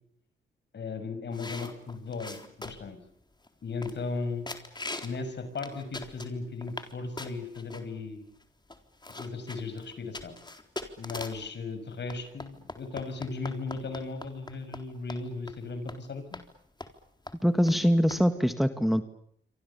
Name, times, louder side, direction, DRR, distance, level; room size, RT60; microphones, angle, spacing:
voice 1, 0.7-3.0 3.6-4.5 5.0-8.2 9.1-10.3 11.0-16.4, left 4 dB, 60° left, 10 dB, 6.2 m, -36 dB
sound 1, 1.3-3.0 3.4-3.5 3.8-4.2 4.5-5.2 5.6-6.9 7.2-7.8 8.4-8.5 8.7-11.5 12.1-14.8 15.1-15.2 15.5-15.6 15.9-16.0 16.3-16.5 16.8-17.0 17.3-17.4 17.7-17.8 18.1-18.2, left 2 dB, 20° left, 3.9 m, -41 dB
voice 2, 17.4-19.0, equal, ahead, 8 dB, 2.0 m, -23 dB
27.5 x 25.0 x 7.1 m, 0.68 s
supercardioid pair, 55°, 20 cm